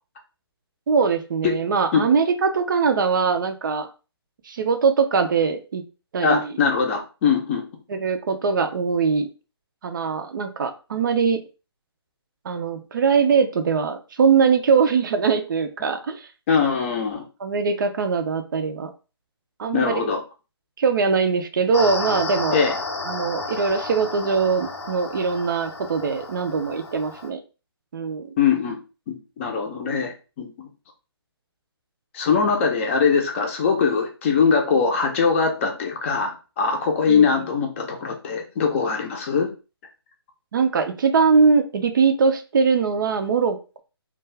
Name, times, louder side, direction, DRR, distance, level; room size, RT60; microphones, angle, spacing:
voice 1, 0.9-3.9 4.5-5.8 6.1-6.5 7.9-9.3 9.8-11.4 12.5-16.3 17.4-18.9 19.6-20.1 20.8-22.6 23.0-27.4 27.9-28.3 37.1-37.3 40.5-43.8, right 5 dB, 50° right, 7 dB, 0.4 m, -21 dB
voice 2, 6.2-7.6 16.5-17.2 19.7-20.2 22.5-22.7 28.4-28.8 29.1-30.7 32.1-39.5, left 5 dB, 30° left, 3 dB, 0.5 m, -22 dB
sound 1, 21.7-27.3, left 3 dB, 90° left, 0.6 m, -31 dB
2.3 x 2.3 x 3.2 m, 0.32 s
figure-of-eight pair, 150°, 14 cm